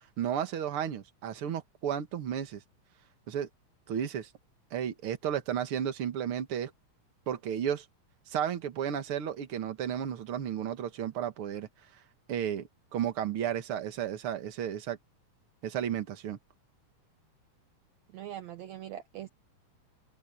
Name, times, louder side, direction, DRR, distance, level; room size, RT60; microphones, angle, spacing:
voice 1, 0.2-2.6 3.3-3.5 3.9-4.3 4.7-6.7 7.3-7.9 8.3-11.7 12.3-15.0 15.6-16.4, right 9 dB, 50° right, 2.2 m, -33 dB
voice 2, 18.1-19.3, right 12 dB, 70° right, 2.1 m, -42 dB
omnidirectional pair, 3.6 m